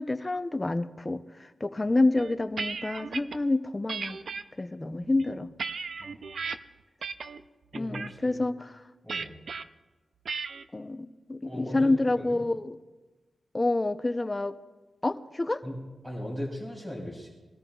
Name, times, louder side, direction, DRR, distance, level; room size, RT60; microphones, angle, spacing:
voice 1, 0.0-4.2 4.6-5.5 7.7-8.8 10.7-12.8 13.5-14.5 15.0-15.6, left 2 dB, 20° left, 10 dB, 0.6 m, -28 dB
sound 1, 2.2-3.4 3.9-4.4 5.0-6.6 7.0-7.4 7.7-8.1 9.1-9.6 10.3-10.6, right 5 dB, 65° right, 0.5 m, -35 dB
voice 2, 6.0-6.3 7.7-8.4 9.0-9.4 11.4-11.9 15.6-17.3, equal, 10° right, -3 dB, 3.4 m, -38 dB
21.0 x 13.5 x 2.3 m, 1.2 s
wide cardioid pair, 110°, 0 cm